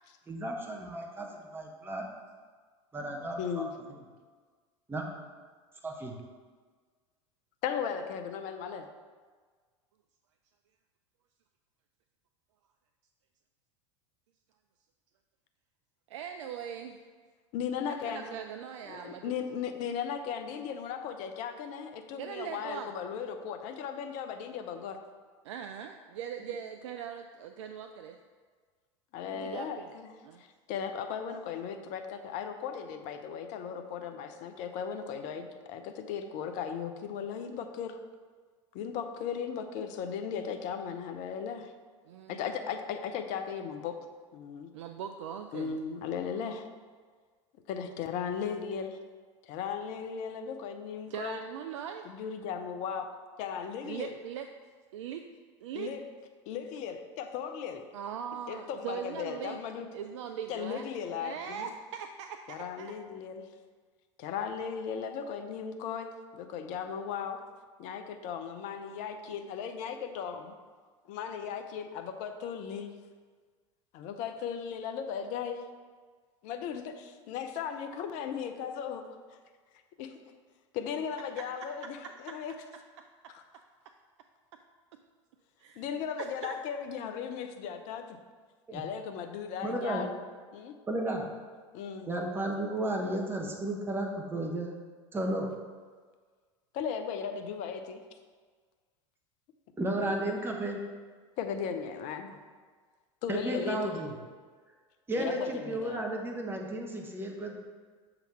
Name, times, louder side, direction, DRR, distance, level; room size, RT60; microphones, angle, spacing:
voice 1, 0.3-2.1 2.9-3.6 4.9-5.0 5.8-6.2 88.7-88.8 89.6-90.1 90.9-91.2 92.1-94.7 95.1-95.5 99.8-100.8 103.3-104.1 105.1-107.6, right 1 dB, 15° right, 0 dB, 1.0 m, -33 dB
voice 2, 3.4-3.7 7.6-8.9 17.5-18.3 18.9-25.0 29.1-30.1 30.4-38.0 38.7-41.7 42.3-44.0 44.3-44.7 45.5-46.7 47.7-49.0 49.4-51.4 52.0-53.1 53.4-54.1 55.7-56.0 56.5-57.8 58.5-59.9 60.5-61.7 62.5-63.5 64.2-67.4 67.8-70.5 71.1-73.0 73.9-75.6 76.4-79.1 80.0-80.1 80.7-82.5 83.3-83.4 85.8-88.2 88.7-90.1 90.5-90.7 91.7-92.1 96.7-98.0 100.0-100.3 101.4-102.4 103.2-104.0 105.1-106.0, left 7 dB, 50° left, 7 dB, 0.7 m, -37 dB
voice 3, 16.1-17.1 17.9-19.3 22.2-22.9 25.4-28.2 29.3-29.9 30.2-30.4 42.1-42.4 44.7-45.7 51.1-52.1 53.8-54.5 54.9-55.2 55.6-55.9 57.9-60.9 61.2-62.9 81.8-83.3 83.9-84.0 85.6-85.8 86.2-86.6, right 8 dB, 70° right, 6 dB, 0.4 m, -41 dB
6.9 x 3.9 x 4.5 m, 1.5 s
hypercardioid pair, 80°, 16 cm